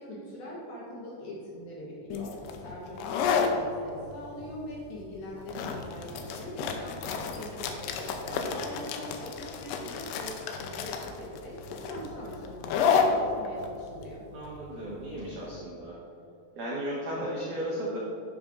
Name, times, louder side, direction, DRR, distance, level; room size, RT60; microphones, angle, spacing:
voice 1, 0.0-2.3 2.6-11.5 11.8-14.2, equal, 65° left, -5 dB, 2.5 m, -42 dB
sound 1, 2.1-15.5, left 6 dB, 85° left, 2.5 m, -31 dB
voice 2, 8.2-8.6 14.3-16.0 16.5-18.0, right 1 dB, 90° right, -6 dB, 1.7 m, -35 dB
11.5 x 6.3 x 2.5 m, 2.7 s
omnidirectional pair, 5.3 m